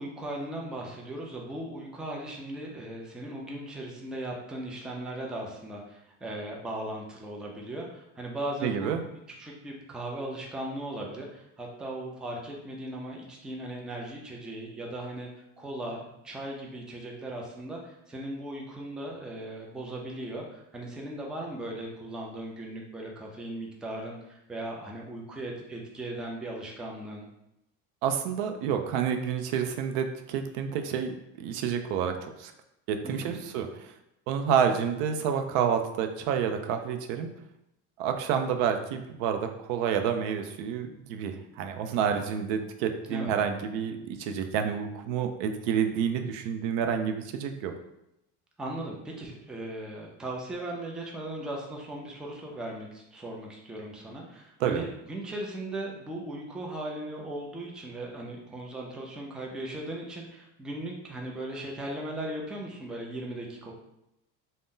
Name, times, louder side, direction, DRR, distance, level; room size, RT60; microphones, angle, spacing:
voice 1, 0.0-9.0 9.3-15.3 15.6-27.3 33.0-33.4 43.1-43.4 48.6-63.7, right 1 dB, ahead, -1 dB, 0.3 m, -38 dB
voice 2, 8.6-9.0 28.0-32.1 32.4-32.5 32.9-33.9 34.3-37.3 38.0-47.7 54.6-54.8, right 7 dB, 85° right, 6 dB, 0.5 m, -29 dB
2.6 x 2.1 x 3.6 m, 0.85 s
cardioid pair, 120°, 35 cm